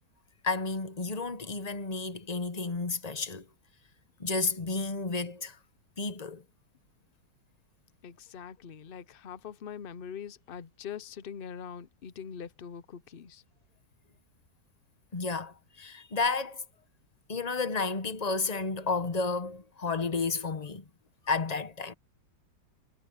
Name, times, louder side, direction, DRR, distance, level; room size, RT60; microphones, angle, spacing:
voice 1, 0.4-3.4 4.2-5.6 6.0-6.4 15.1-16.6 17.3-20.8 21.3-21.9, left 4 dB, 30° left, 0.8 m, -31 dB
voice 2, 8.0-13.4, left 7 dB, 65° left, 0.5 m, -43 dB
omnidirectional pair, 2.0 m